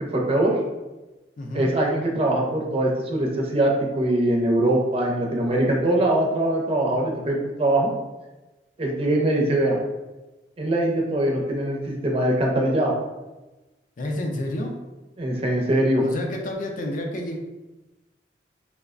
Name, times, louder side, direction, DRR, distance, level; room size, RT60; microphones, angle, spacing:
voice 1, 0.1-0.6 1.5-7.9 8.8-9.8 10.6-12.9 15.2-16.0, right 1 dB, 35° right, -1 dB, 0.4 m, -22 dB
voice 2, 1.4-1.7 14.0-14.8 16.0-17.4, left 1 dB, 45° left, 1 dB, 0.4 m, -29 dB
3.1 x 2.0 x 2.4 m, 1.1 s
head